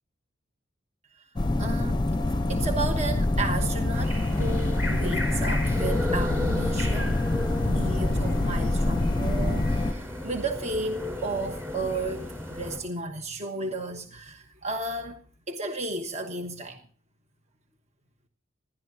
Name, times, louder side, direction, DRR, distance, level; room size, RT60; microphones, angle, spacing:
sound 1, 1.4-9.9, left 2 dB, 25° left, 0.6 m, -25 dB
voice 1, 1.6-2.2 2.5-7.2 7.6-15.2 15.5-16.8, right 2 dB, 35° right, 1.1 m, -33 dB
sound 2, 3.9-12.8, left 1 dB, 10° right, 4.8 m, -35 dB
26.5 x 12.0 x 2.7 m
head